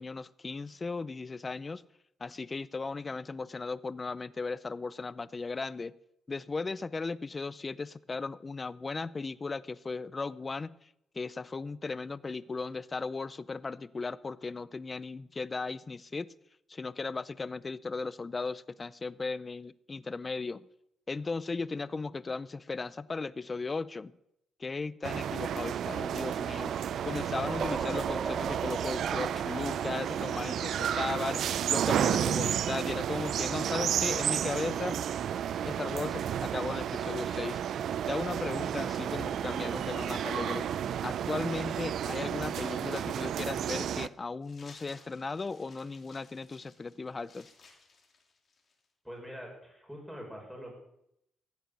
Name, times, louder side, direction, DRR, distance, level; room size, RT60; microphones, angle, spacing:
voice 1, 0.0-1.9 2.2-5.9 6.3-10.9 11.1-16.3 16.7-20.7 21.1-24.1 24.6-26.7 27.0-35.0 35.6-37.6 38.1-40.7 41.0-47.5, left 4 dB, 30° left, 0.5 m, -36 dB
sound 1, 25.0-44.1, right 9 dB, 70° right, 0.5 m, -32 dB
sound 2, 26.6-31.5, right 5 dB, 45° right, 0.9 m, -39 dB
sound 3, 44.4-48.9, left 4 dB, 45° left, 3.2 m, -58 dB
voice 2, 49.0-50.7, equal, ahead, 6.1 m, -44 dB
15.0 x 8.9 x 6.9 m
cardioid pair, 90°, 0 cm